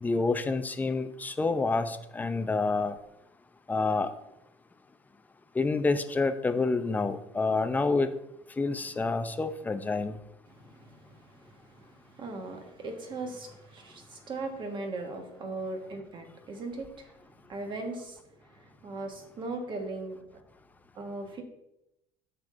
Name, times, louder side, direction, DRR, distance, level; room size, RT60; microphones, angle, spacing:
voice 1, 0.0-3.0 3.7-4.1 5.6-8.1 8.6-10.2, left 3 dB, 15° left, 9 dB, 0.5 m, -28 dB
voice 2, 10.5-17.1 17.5-18.2 18.6-20.2 20.9-21.4, right 2 dB, 40° right, 4 dB, 1.5 m, -39 dB
9.4 x 6.8 x 2.6 m, 0.88 s
cardioid pair, 115°, 13 cm